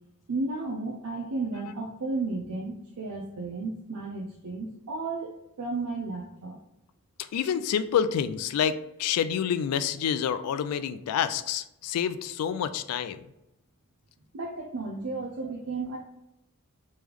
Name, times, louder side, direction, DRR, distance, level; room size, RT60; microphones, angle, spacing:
voice 1, 0.3-6.6 14.3-16.0, right 3 dB, 75° right, 0 dB, 0.5 m, -33 dB
voice 2, 7.3-13.2, left 8 dB, 90° left, 15 dB, 0.3 m, -28 dB
3.3 x 3.1 x 3.5 m, 0.87 s
head